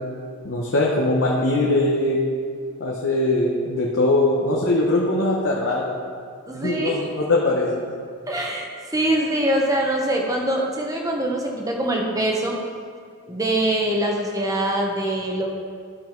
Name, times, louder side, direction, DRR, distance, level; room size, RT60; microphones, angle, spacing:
voice 1, 0.4-2.2 2.8-5.9 6.5-7.8, left 2 dB, 65° left, -3 dB, 0.9 m, -21 dB
voice 2, 6.5-7.0 8.3-8.7 8.9-12.6 13.3-15.5, right 1 dB, 15° right, 0 dB, 1.0 m, -23 dB
11.5 x 5.6 x 4.5 m, 2.2 s
head